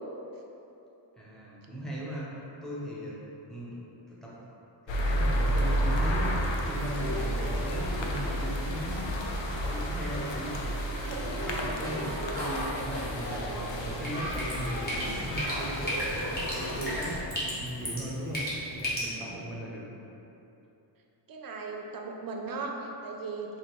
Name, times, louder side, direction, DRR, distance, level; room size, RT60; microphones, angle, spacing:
voice 1, 1.2-3.2 3.5-3.8 4.1-4.4 4.8-6.4 6.6-10.7 11.1-15.9 16.2-18.4 18.7-19.8, right 1 dB, ahead, -7 dB, 0.7 m, -38 dB
sound 1, 4.9-17.2, equal, 70° left, 0.6 m, -32 dB
sound 2, 6.7-17.0, equal, 40° left, 1.3 m, -38 dB
voice 2, 11.1-11.4 21.3-23.6, right 4 dB, 50° right, 1 dB, 0.5 m, -37 dB
Drip, 13.9-19.0, equal, 20° left, 1.1 m, -35 dB
5.0 x 2.7 x 3.0 m, 2.9 s
wide cardioid pair, 125°, 47 cm